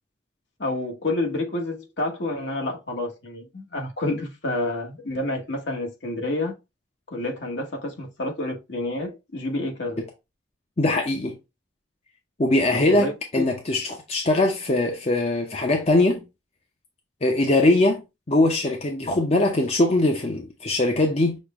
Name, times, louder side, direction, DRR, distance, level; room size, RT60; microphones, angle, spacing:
voice 1, 0.6-6.5 7.1-10.0 12.7-13.5, left 2 dB, 65° left, 1.3 m, -29 dB
voice 2, 10.8-11.4 12.4-16.2 17.2-18.0 18.3-21.4, left 2 dB, 35° left, 0.7 m, -21 dB
6.3 x 2.2 x 3.5 m
head